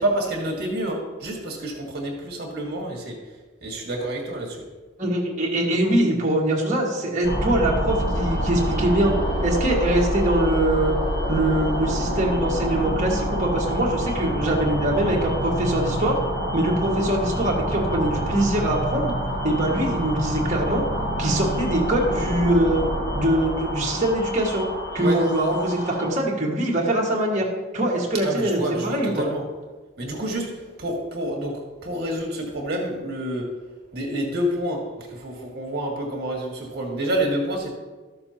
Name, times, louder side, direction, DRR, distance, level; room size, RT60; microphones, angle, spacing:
voice 1, 0.0-3.2 3.6-4.6 25.0-25.2 28.1-29.4 30.0-33.5 33.9-37.7, right 1 dB, 50° right, -1 dB, 2.0 m, -28 dB
voice 2, 5.0-9.1 9.4-10.9 11.3-16.2 16.5-19.1 19.4-20.8 21.2-22.8 23.1-24.7 24.9-27.5 27.7-29.1, right 1 dB, 35° right, -3 dB, 1.7 m, -23 dB
sound 1, 7.2-26.1, equal, 55° left, 2.8 m, -27 dB
13.5 x 6.8 x 2.9 m, 1.3 s
head